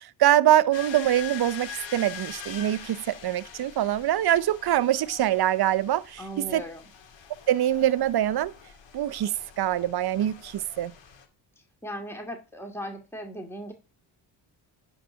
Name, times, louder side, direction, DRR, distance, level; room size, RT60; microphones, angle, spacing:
voice 1, 0.2-6.2 6.5-6.6 7.5-8.5 8.9-10.9, right 12 dB, 50° right, 0.8 m, -24 dB
sound 1, 0.7-11.2, left 8 dB, 65° left, 2.2 m, -44 dB
voice 2, 6.2-6.9 11.8-13.7, equal, 5° left, 2.2 m, -37 dB
10.0 x 4.3 x 6.3 m
supercardioid pair, 50°, 48 cm